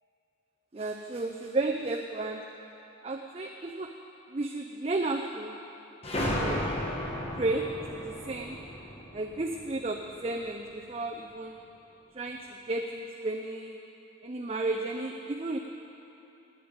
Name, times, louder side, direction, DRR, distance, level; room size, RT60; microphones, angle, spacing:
voice 1, 0.7-2.5 3.0-4.0 4.3-5.6 6.3-6.7 7.4-8.6 9.1-11.6 12.1-13.8 14.2-15.6, right 2 dB, 30° right, 2 dB, 0.5 m, -33 dB
sound 1, 6.0-10.5, left 1 dB, 30° left, 1.2 m, -34 dB
19.0 x 8.7 x 5.2 m, 2.9 s
head